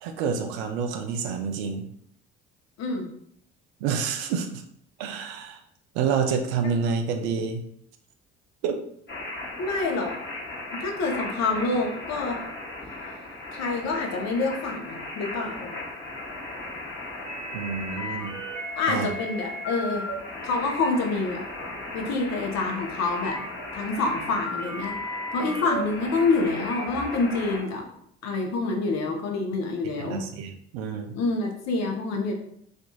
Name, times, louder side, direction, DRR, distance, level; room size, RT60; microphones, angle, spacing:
voice 1, 0.0-1.9 3.8-4.6 5.0-5.6 5.9-7.6 8.6-8.8 17.5-18.4 18.9-19.1 30.0-31.2, right 6 dB, 75° right, 6 dB, 0.5 m, -28 dB
voice 2, 2.8-3.1 9.6-10.1 10.7-12.4 13.5-15.7 18.8-20.1 20.4-21.5 21.9-23.4 23.7-25.0 25.3-27.8 28.2-30.2 31.1-32.3, left 3 dB, 50° left, 2 dB, 0.7 m, -27 dB
sound 1, 9.1-27.6, left 1 dB, 30° left, 1.0 m, -36 dB
2.7 x 2.5 x 2.2 m, 0.68 s
hypercardioid pair, 55°, 33 cm